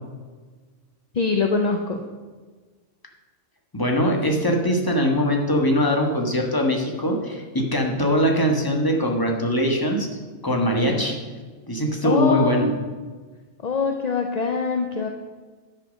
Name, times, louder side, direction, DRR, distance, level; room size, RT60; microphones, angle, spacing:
voice 1, 1.1-2.0 10.8-11.0 12.0-12.8 13.6-15.1, left 4 dB, 45° left, 4 dB, 0.6 m, -23 dB
voice 2, 3.7-10.1 10.4-11.1 11.7-12.7, equal, 15° left, 1 dB, 1.3 m, -22 dB
9.8 x 5.8 x 6.3 m, 1.4 s
omnidirectional pair, 1.3 m